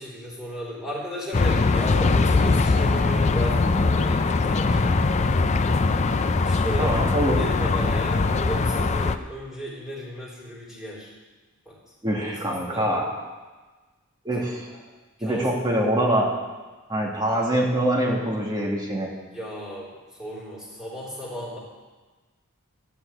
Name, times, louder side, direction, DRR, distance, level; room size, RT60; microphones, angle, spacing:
voice 1, 0.0-4.9 6.4-6.9 7.2-11.1 11.7-11.8 12.2-13.0 14.7-14.8 15.2-15.5 15.9-16.0 19.3-19.9 20.2-21.6, equal, ahead, -7 dB, 4.2 m, -35 dB
sound 1, 1.3-9.2, left 3 dB, 30° left, 0.5 m, -21 dB
voice 2, 6.8-7.4 12.0-13.2 14.2-14.7 15.2-16.3 16.9-19.1, right 1 dB, 20° right, -2 dB, 2.2 m, -24 dB
12.5 x 6.1 x 9.0 m, 1.3 s
head